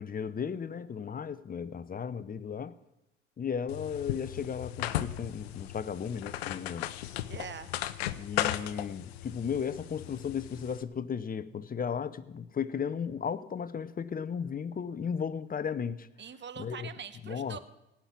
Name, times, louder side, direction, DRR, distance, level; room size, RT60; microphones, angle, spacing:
voice 1, 0.0-2.7 3.4-6.9 8.2-16.1 16.6-16.9 17.2-17.6, left 7 dB, 30° left, 14 dB, 0.8 m, -35 dB
sound 1, 3.7-10.8, left 13 dB, 85° left, 0.7 m, -36 dB
voice 2, 7.3-7.7 16.2-17.6, right 7 dB, 35° right, 12 dB, 1.3 m, -43 dB
17.0 x 6.0 x 8.5 m, 0.93 s
hypercardioid pair, 65°, 31 cm